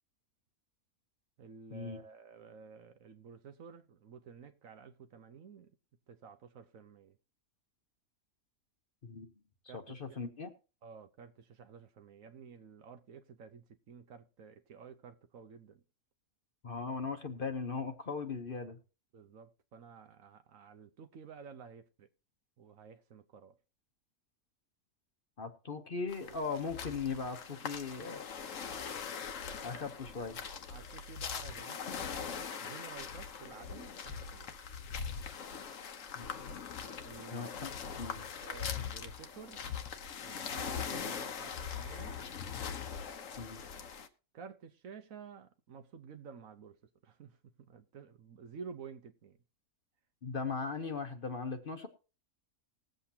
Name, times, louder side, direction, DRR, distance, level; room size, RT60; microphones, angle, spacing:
voice 1, 1.4-5.7 6.1-7.2 9.7-10.2 10.8-15.8 19.1-22.1 22.6-23.6 30.7-32.3 32.6-34.5 37.0-37.5 38.4-39.6 40.2-42.2 44.3-46.8 47.0-49.4, right 6 dB, 65° right, 1.2 m, -52 dB
voice 2, 9.7-10.5 16.6-18.8 25.4-28.3 29.6-30.4 36.1-36.3 37.3-38.3 43.4-43.6 50.2-51.9, left 4 dB, 40° left, 1.0 m, -39 dB
sound 1, 26.1-44.1, left 7 dB, 60° left, 1.2 m, -41 dB
20.5 x 7.8 x 2.8 m
omnidirectional pair, 1.6 m